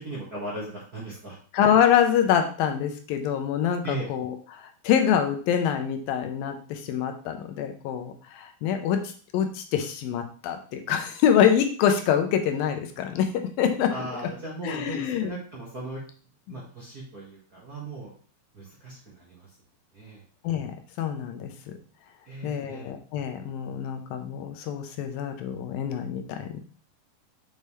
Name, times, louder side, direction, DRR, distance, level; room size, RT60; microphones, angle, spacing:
voice 1, 0.0-1.4 3.8-4.1 13.9-16.0 16.5-18.1 18.5-19.5 19.9-20.2 22.2-22.9, right 2 dB, 40° right, -6 dB, 1.3 m, -37 dB
voice 2, 1.5-13.9 14.6-15.3 16.5-16.6 20.4-20.7 21.0-21.5 22.4-26.6, left 8 dB, 80° left, 6 dB, 2.5 m, -25 dB
6.5 x 5.5 x 3.2 m, 0.41 s
omnidirectional pair, 4.1 m